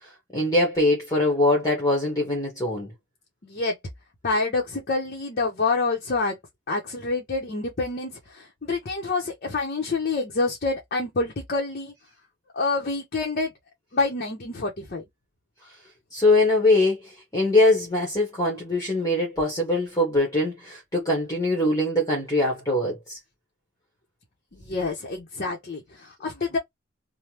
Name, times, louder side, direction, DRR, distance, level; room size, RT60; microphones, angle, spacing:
voice 1, 0.3-2.9 16.1-23.2, left 2 dB, 15° left, 1.1 m, -22 dB
voice 2, 3.4-3.8 4.2-6.4 6.7-11.9 12.5-13.5 13.9-15.0 24.5-26.6, left 3 dB, 50° left, 0.8 m, -27 dB
3.3 x 2.1 x 2.8 m
head